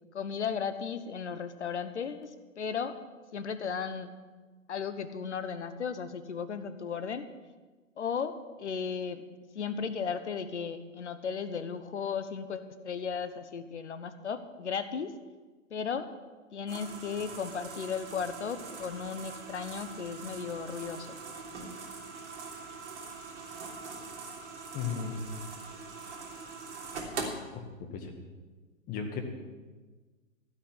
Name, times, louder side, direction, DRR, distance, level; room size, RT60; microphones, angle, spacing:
voice 1, 0.1-3.0 3.3-4.1 4.7-7.3 8.0-9.2 9.5-15.2 15.7-16.1 16.5-21.2, left 6 dB, 60° left, 12 dB, 1.2 m, -35 dB
sound 1, 16.7-27.3, right 4 dB, 60° right, 3.3 m, -42 dB
voice 2, 24.7-25.2 27.5-28.1 28.9-29.2, left 6 dB, 20° left, 6 dB, 1.7 m, -35 dB
16.0 x 6.1 x 10.0 m, 1.3 s
figure-of-eight pair, 115°, 40 cm